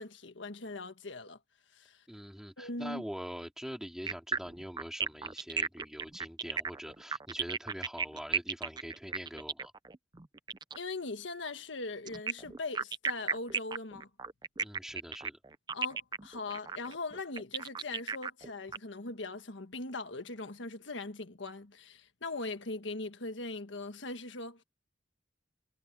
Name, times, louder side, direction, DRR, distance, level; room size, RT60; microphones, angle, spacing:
voice 1, 0.0-1.4 1.7-2.0 2.6-3.0 10.7-14.1 15.7-24.6, left 3 dB, 85° left, 1.5 m, -40 dB
voice 2, 2.1-9.7 14.6-15.4, equal, 5° right, 2.8 m, -44 dB
sound 1, 4.1-10.8 12.1-18.8, right 5 dB, 25° right, 0.6 m, -35 dB
head